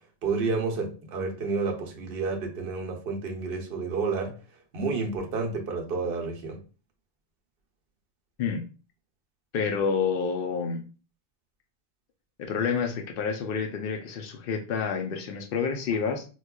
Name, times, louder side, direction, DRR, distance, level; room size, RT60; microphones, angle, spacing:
voice 1, 0.2-4.3 4.7-6.6, right 4 dB, 60° right, 0.9 m, -30 dB
voice 2, 9.5-10.8 12.4-16.3, left 6 dB, 60° left, 0.7 m, -28 dB
4.6 x 2.3 x 2.2 m
omnidirectional pair, 1.2 m